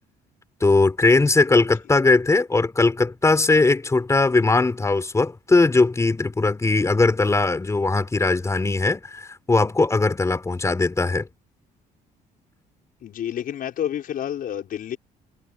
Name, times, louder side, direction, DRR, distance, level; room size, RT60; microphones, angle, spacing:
voice 1, 0.6-11.3, left 3 dB, 15° left, 4.0 m, -19 dB
voice 2, 13.0-15.0, left 10 dB, 55° left, 6.1 m, -29 dB
cardioid pair, 110°, 17 cm